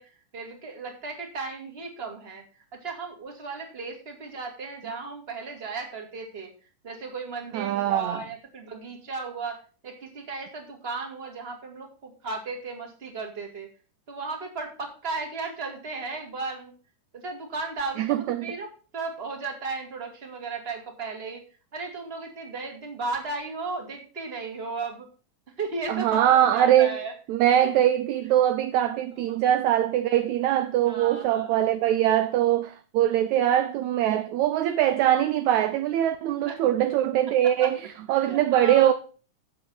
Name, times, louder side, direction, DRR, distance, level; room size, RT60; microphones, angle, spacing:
voice 1, 0.0-6.5 6.8-13.7 14.1-16.7 17.1-21.4 21.7-25.1 25.6-27.1 29.2-29.4 30.9-31.6 36.5-36.6 37.4-37.7 38.2-38.9, right 4 dB, 20° right, 2.2 m, -35 dB
voice 2, 7.5-8.2 18.0-18.5 25.9-27.0 27.3-37.8 38.1-38.9, right 11 dB, 80° right, 1.7 m, -22 dB
9.0 x 7.5 x 5.7 m
omnidirectional pair, 3.9 m